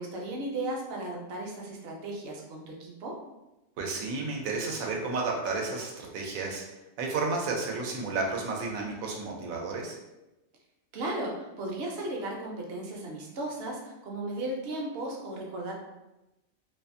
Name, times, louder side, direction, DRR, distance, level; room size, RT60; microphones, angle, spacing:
voice 1, 0.0-3.1 10.9-15.7, right 1 dB, 60° right, -1 dB, 0.8 m, -35 dB
voice 2, 3.8-6.6 7.0-10.0, right 3 dB, 90° right, 0 dB, 1.0 m, -32 dB
2.6 x 2.4 x 2.5 m, 0.97 s
omnidirectional pair, 1.4 m